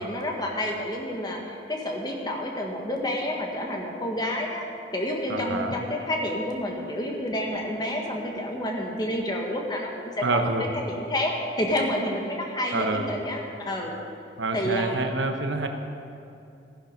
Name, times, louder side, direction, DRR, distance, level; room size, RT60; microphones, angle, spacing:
voice 1, 0.0-4.6 4.9-13.9 14.5-15.2, left 1 dB, 20° left, 0 dB, 1.5 m, -29 dB
voice 2, 5.3-5.8 10.2-10.7 12.7-13.1 14.4-15.7, right 2 dB, 80° right, 5 dB, 1.1 m, -27 dB
15.5 x 10.5 x 5.2 m, 2.7 s
head